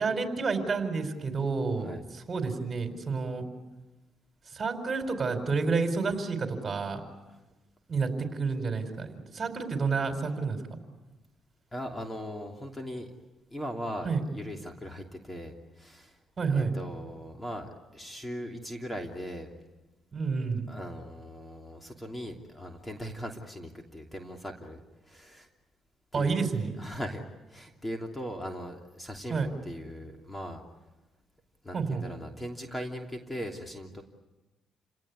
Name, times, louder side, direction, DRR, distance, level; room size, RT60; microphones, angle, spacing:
voice 1, 0.0-3.5 4.5-7.0 7.9-10.6 14.0-14.2 16.4-16.7 20.1-20.7 26.1-26.7 29.3-29.5 31.7-32.0, right 4 dB, 35° right, 6 dB, 4.8 m, -29 dB
voice 2, 11.7-13.1 13.5-16.2 16.5-19.5 20.7-25.5 26.1-26.4 26.8-27.2 27.5-30.6 31.6-34.0, equal, 15° left, 3 dB, 3.0 m, -39 dB
29.5 x 18.0 x 9.6 m, 1.1 s
cardioid pair, 90°, 0 cm